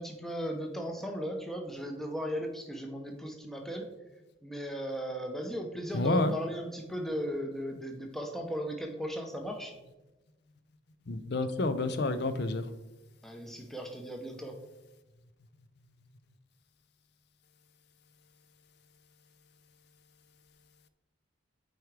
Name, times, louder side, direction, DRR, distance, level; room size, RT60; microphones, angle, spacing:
voice 1, 0.0-3.9 4.4-9.7 13.2-14.6, equal, ahead, 0.7 m, -37 dB
voice 2, 5.9-6.3 11.1-12.7, left 2 dB, 55° left, 0.5 m, -29 dB
8.2 x 4.7 x 3.2 m
head